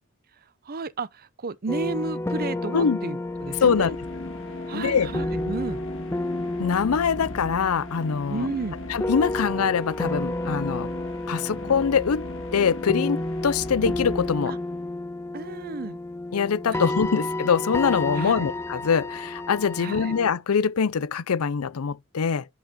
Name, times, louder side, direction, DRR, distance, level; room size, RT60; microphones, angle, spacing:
voice 1, 0.6-3.9 4.7-5.8 8.3-8.8 14.5-14.6 15.3-16.0 16.7-16.8 18.2-18.5 19.8-20.2, right 3 dB, 45° right, 0.7 m, -32 dB
sound 1, 1.7-20.3, left 2 dB, 10° left, 0.4 m, -31 dB
sound 2, 3.2-14.9, left 2 dB, 60° left, 2.1 m, -39 dB
voice 2, 3.6-4.0 4.7-5.1 6.6-8.5 8.9-10.9 11.3-12.3 12.5-14.5 16.3-22.5, left 6 dB, 85° left, 0.5 m, -23 dB
10.5 x 5.3 x 3.7 m
head